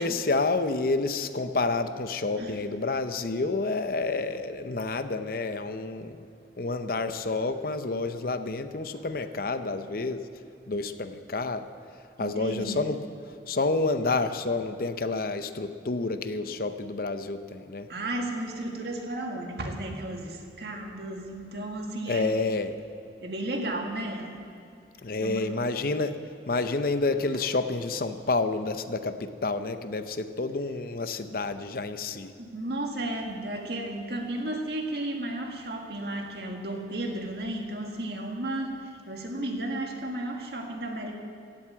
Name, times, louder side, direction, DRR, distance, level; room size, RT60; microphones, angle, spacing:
voice 1, 0.0-6.2 6.6-10.2 10.7-11.7 12.2-13.0 13.5-17.9 22.1-22.8 25.0-32.3, left 3 dB, 50° left, 10 dB, 0.7 m, -29 dB
voice 2, 12.2-12.8 17.9-22.4 23.2-24.4 25.2-25.5 32.4-41.1, right 1 dB, 60° right, 2 dB, 1.9 m, -34 dB
16.0 x 7.9 x 8.6 m, 2.4 s
head